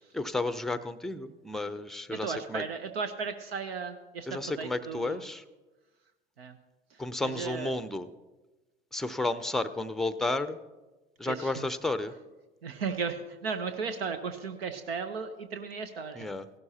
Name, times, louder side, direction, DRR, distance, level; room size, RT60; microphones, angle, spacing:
voice 1, 0.1-2.6 4.3-5.4 7.0-8.1 8.9-10.6 11.2-12.1 16.1-16.4, left 2 dB, ahead, 13 dB, 0.5 m, -32 dB
voice 2, 2.1-5.2 6.4-6.6 6.9-7.7 11.2-11.7 12.6-16.3, right 5 dB, 80° right, 8 dB, 0.7 m, -35 dB
16.0 x 12.0 x 2.8 m, 1.2 s
hypercardioid pair, 70°, 30 cm